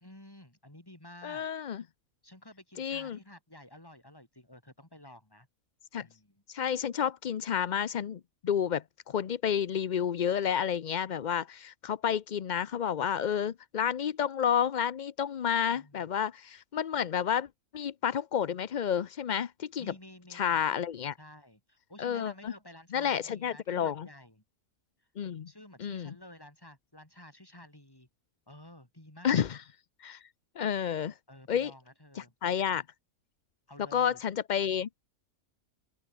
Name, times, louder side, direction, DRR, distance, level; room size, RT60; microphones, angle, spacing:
voice 1, 0.0-1.5 2.2-5.5 6.0-6.4 15.7-16.1 19.8-20.6 21.2-24.4 25.5-28.1 28.5-29.5 31.3-32.3 33.7-34.2, left 1 dB, 15° left, 4.0 m, -52 dB
voice 2, 1.2-1.8 2.8-3.2 5.9-6.1 6.5-17.5 17.7-19.9 20.3-21.2 22.0-22.5 22.9-24.1 25.2-25.5 25.8-26.1 29.2-29.6 30.0-30.2 30.6-31.1 31.5-31.7 32.2-32.8 33.9-34.9, left 8 dB, 55° left, 0.5 m, -30 dB
open air
omnidirectional pair, 1.5 m